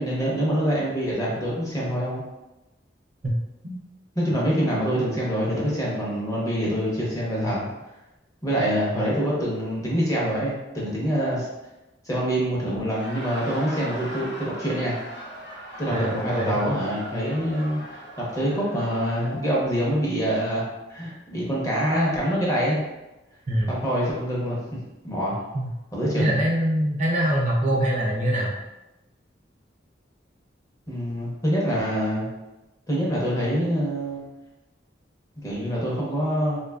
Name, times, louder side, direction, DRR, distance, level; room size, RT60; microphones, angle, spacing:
voice 1, 0.0-2.2 4.2-7.7 8.4-11.5 12.0-15.0 15.8-20.6 20.9-22.8 23.7-24.6 25.0-25.4 25.9-26.3 30.9-32.3 32.9-34.3 35.4-36.6, equal, 20° left, -6 dB, 0.7 m, -25 dB
Laughter, 12.8-19.6, right 1 dB, 60° left, 0.9 m, -39 dB
voice 2, 15.9-16.6 23.5-23.7 25.5-25.7 26.2-28.6, right 1 dB, 40° right, -2 dB, 0.4 m, -24 dB
2.6 x 2.3 x 2.2 m, 1.0 s
head